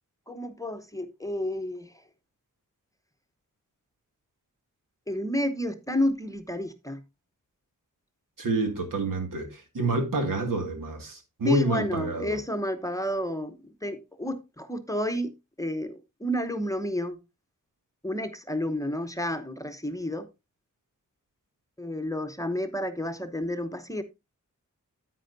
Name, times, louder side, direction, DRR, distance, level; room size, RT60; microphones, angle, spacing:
voice 1, 0.3-1.9 5.1-7.0 11.4-17.2 18.0-20.3 21.8-24.0, left 1 dB, 10° left, 0.9 m, -31 dB
voice 2, 8.4-12.4, right 2 dB, 85° right, 2.2 m, -28 dB
9.9 x 9.0 x 2.6 m
wide cardioid pair, 105°, 32 cm